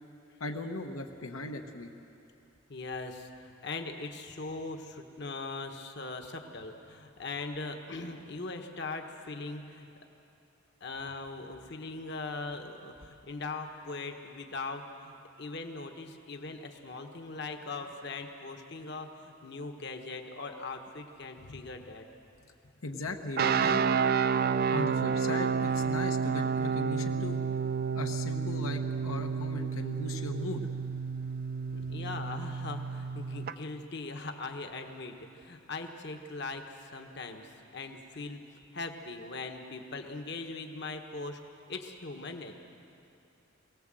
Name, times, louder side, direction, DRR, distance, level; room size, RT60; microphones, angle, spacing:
voice 1, 0.4-1.9 21.4-21.6 22.8-23.9 24.7-27.4 27.9-30.6, left 2 dB, 80° left, 3 dB, 1.2 m, -38 dB
voice 2, 2.7-9.9 10.8-22.0 31.7-38.4 38.7-41.4 41.7-42.5, left 3 dB, 55° left, 5 dB, 1.3 m, -40 dB
sound 1, 23.4-33.5, right 6 dB, 45° right, 0.4 m, -30 dB
23.5 x 18.0 x 7.6 m, 2.7 s
head